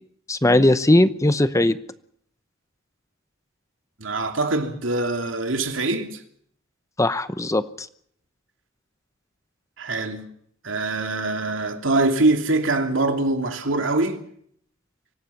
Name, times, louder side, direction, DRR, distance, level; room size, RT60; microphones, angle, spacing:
voice 1, 0.3-1.8 7.0-7.9, left 1 dB, 15° left, 0.8 m, -19 dB
voice 2, 4.0-6.1 9.8-10.2 10.6-14.2, right 2 dB, 70° right, 2.9 m, -23 dB
25.0 x 18.0 x 7.2 m
head